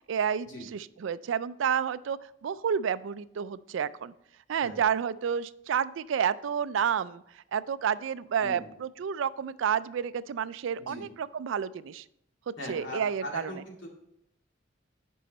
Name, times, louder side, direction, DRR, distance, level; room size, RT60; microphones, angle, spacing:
voice 1, 0.1-4.1 4.5-12.0 12.5-13.5, right 7 dB, 80° right, 16 dB, 0.3 m, -30 dB
voice 2, 12.6-13.9, equal, 80° left, -1 dB, 2.3 m, -40 dB
9.3 x 5.5 x 4.2 m, 0.76 s
head